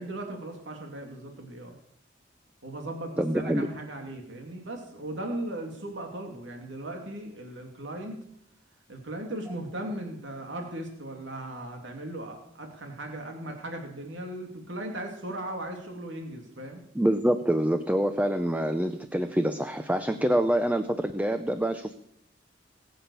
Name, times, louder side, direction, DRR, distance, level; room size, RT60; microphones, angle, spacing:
voice 1, 0.0-1.8 2.6-8.2 8.9-16.8 20.1-20.4, right 1 dB, 80° right, 3 dB, 2.7 m, -37 dB
voice 2, 3.2-3.7 16.9-21.9, right 1 dB, 10° right, 9 dB, 0.7 m, -26 dB
20.5 x 8.0 x 7.0 m, 0.73 s
head